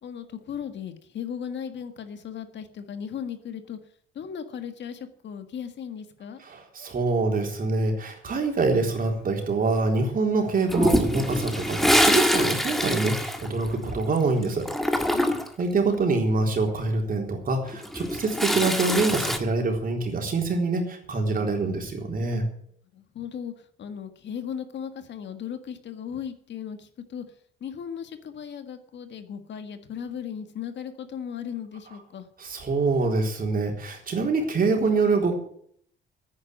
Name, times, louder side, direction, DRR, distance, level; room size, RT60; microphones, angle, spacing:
voice 1, 0.0-3.8 4.1-6.4 15.1-15.5 22.9-23.5 23.8-27.2 27.6-32.3, left 8 dB, 65° left, 9 dB, 1.8 m, -36 dB
voice 2, 6.4-14.7 15.6-22.4 32.4-35.3, right 3 dB, 45° right, 2 dB, 3.9 m, -25 dB
Toilet flush, 10.7-14.2 14.4-15.6 17.7-19.4, equal, ahead, 1.8 m, -24 dB
10.0 x 9.7 x 9.2 m, 0.64 s
cardioid pair, 90°, 20 cm